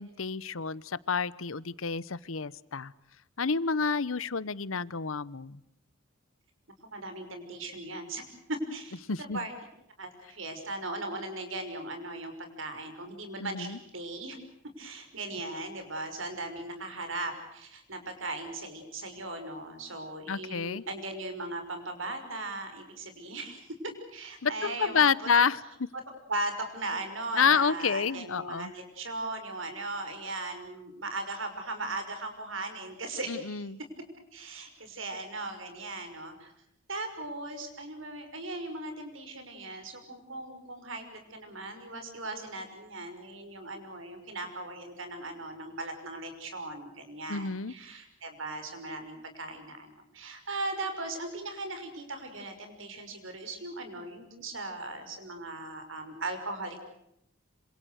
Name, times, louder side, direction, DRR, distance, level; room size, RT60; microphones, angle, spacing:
voice 1, 0.0-2.9 3.4-5.6 9.1-9.5 13.4-13.8 20.3-20.8 24.4-25.9 27.3-28.7 33.3-33.8 47.3-47.7, left 5 dB, 80° left, 20 dB, 0.9 m, -29 dB
voice 2, 6.8-9.5 10.0-14.4 14.8-23.7 24.1-25.1 26.3-33.7 34.3-36.5 36.9-56.8, right 2 dB, 70° right, 7 dB, 5.9 m, -38 dB
27.5 x 26.5 x 6.5 m, 0.77 s
head